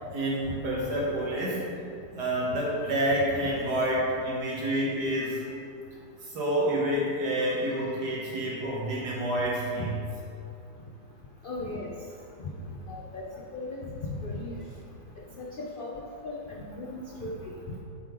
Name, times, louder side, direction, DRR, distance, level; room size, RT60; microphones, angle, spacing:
voice 1, 0.1-1.6 2.1-5.5 6.2-9.9, right 1 dB, 80° right, -4 dB, 2.0 m, -28 dB
voice 2, 11.4-11.9 12.4-12.5 12.9-13.2 13.5-13.8 14.1-14.5 15.4-17.4, left 2 dB, 80° left, -2 dB, 0.4 m, -37 dB
8.1 x 3.8 x 4.6 m, 2.6 s
omnidirectional pair, 1.7 m